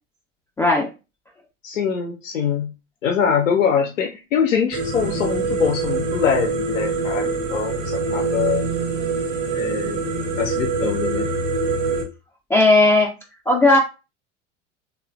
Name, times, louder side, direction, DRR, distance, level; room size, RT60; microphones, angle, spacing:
voice 1, 0.6-0.9 12.5-13.1 13.5-13.8, left 2 dB, 10° left, -2 dB, 0.3 m, -15 dB
voice 2, 1.6-2.7 3.0-8.6 9.5-10.0 10.4-11.3, left 7 dB, 80° left, 3 dB, 0.5 m, -23 dB
sound 1, 4.7-12.0, right 4 dB, 55° right, 0.9 m, -24 dB
3.0 x 2.4 x 2.3 m, 0.29 s
figure-of-eight pair, 75°, 38 cm